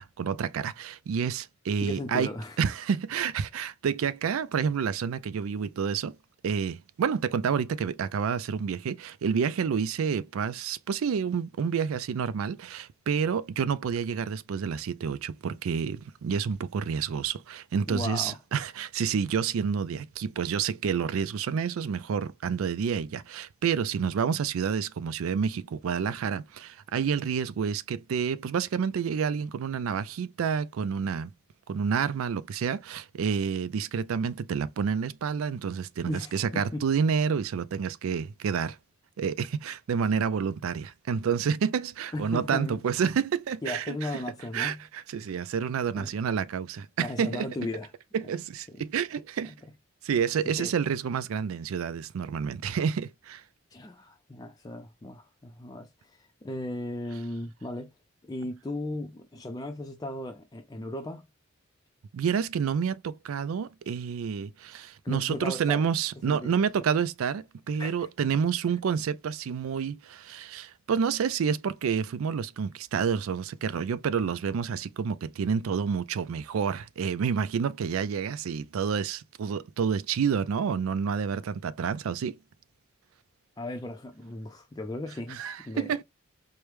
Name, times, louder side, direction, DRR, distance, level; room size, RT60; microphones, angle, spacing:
voice 1, 0.0-2.3 2.6-6.2 6.4-31.3 31.7-38.8 39.2-44.1 44.5-47.5 48.1-49.5 50.0-53.4 62.1-82.4 85.3-86.0, right 6 dB, 85° right, 0.4 m, -29 dB
voice 2, 1.8-2.6 17.9-18.4 36.1-36.8 42.1-42.8 43.6-44.8 45.9-46.1 47.0-47.9 48.7-48.8 49.4-49.5 50.6-50.7 53.7-57.9 58.2-61.3 65.0-65.8 66.3-66.8 67.8-68.1 83.6-86.0, left 1 dB, 20° left, 0.4 m, -36 dB
4.6 x 2.1 x 3.3 m
head